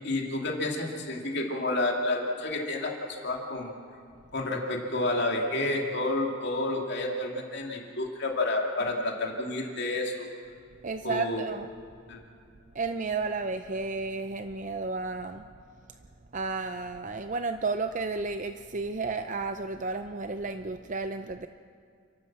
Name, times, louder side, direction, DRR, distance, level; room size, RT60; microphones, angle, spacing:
voice 1, 0.0-2.9 3.2-3.7 4.3-10.3 11.0-11.4 12.1-12.2, left 2 dB, 55° left, 0 dB, 2.7 m, -30 dB
voice 2, 10.8-11.7 12.7-15.5 16.3-21.5, right 3 dB, 40° right, 8 dB, 0.6 m, -32 dB
30.0 x 12.0 x 7.5 m, 2.3 s
head